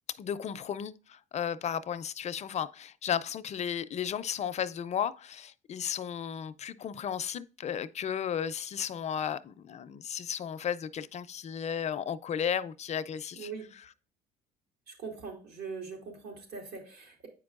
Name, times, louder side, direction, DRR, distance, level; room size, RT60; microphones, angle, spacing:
voice 1, 0.2-13.5, left 8 dB, 40° left, 0.4 m, -34 dB
voice 2, 13.4-13.7 14.9-17.3, right 5 dB, 70° right, 2.6 m, -42 dB
8.3 x 5.2 x 2.4 m
cardioid pair, 110°, 17 cm